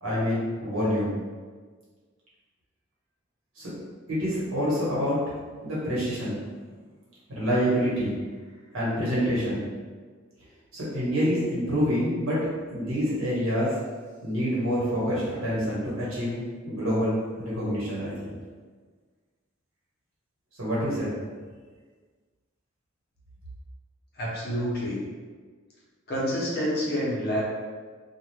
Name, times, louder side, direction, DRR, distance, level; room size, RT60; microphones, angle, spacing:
voice 1, 0.0-1.2 3.6-3.7 4.1-5.2 5.6-6.4 7.3-8.2 8.7-9.6 10.7-12.4 12.7-13.7 14.2-18.3 20.6-21.1, equal, 85° right, -8 dB, 1.2 m, -27 dB
voice 2, 24.1-25.0 26.1-27.4, equal, 50° left, -6 dB, 0.9 m, -28 dB
2.4 x 2.4 x 3.2 m, 1.5 s
head